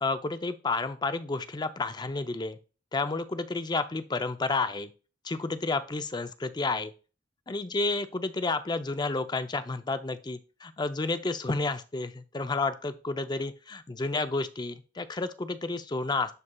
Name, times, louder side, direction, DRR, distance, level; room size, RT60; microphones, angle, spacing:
voice 1, 0.0-2.6 2.9-4.9 5.2-6.9 7.5-16.3, left 3 dB, 25° left, 10 dB, 0.5 m, -31 dB
11.0 x 4.2 x 2.2 m, 0.34 s
head